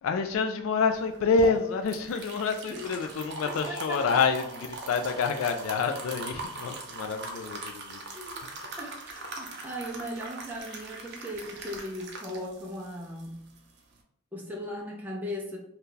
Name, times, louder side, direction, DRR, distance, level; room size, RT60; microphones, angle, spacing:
voice 1, 0.0-8.0 8.4-8.8, left 4 dB, 85° left, 6 dB, 0.3 m, -28 dB
sound 1, 1.0-14.0, right 2 dB, 55° right, 0.6 m, -40 dB
voice 2, 2.7-3.1 3.5-4.2 8.1-13.4 14.3-15.6, equal, 10° right, -3 dB, 0.4 m, -38 dB
2.7 x 2.3 x 3.6 m, 0.73 s
head